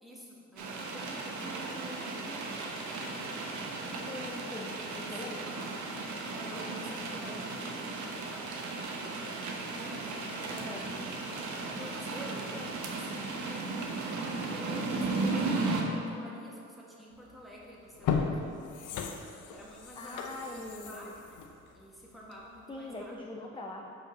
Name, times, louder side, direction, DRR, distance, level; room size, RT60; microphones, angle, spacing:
voice 1, 0.0-3.0 4.7-5.7 6.3-8.9 9.7-10.9 11.7-18.5 19.5-21.4 21.7-23.1 23.5-23.6, equal, ahead, -5 dB, 1.6 m, -49 dB
sound 1, 0.6-15.8, right 3 dB, 70° right, 1.0 m, -35 dB
voice 2, 4.0-5.7 10.5-10.9 20.0-21.1 22.7-23.9, left 2 dB, 15° left, -1 dB, 0.6 m, -42 dB
sound 2, 17.3-17.4 17.9-22.6 23.0-23.1, left 6 dB, 80° left, 0.6 m, -36 dB
5.3 x 5.1 x 5.2 m, 2.6 s
cardioid pair, 90°, 30 cm